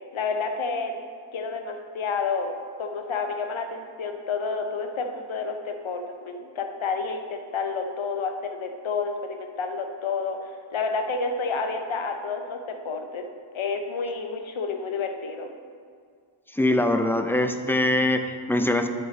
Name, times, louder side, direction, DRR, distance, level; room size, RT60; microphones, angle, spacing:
voice 1, 0.1-0.9 1.3-2.5 2.8-13.3 13.5-15.5, left 4 dB, 75° left, 5 dB, 0.9 m, -30 dB
voice 2, 16.6-18.9, left 1 dB, 5° left, 6 dB, 0.5 m, -23 dB
12.0 x 4.5 x 3.3 m, 2.1 s
cardioid pair, 50°, 48 cm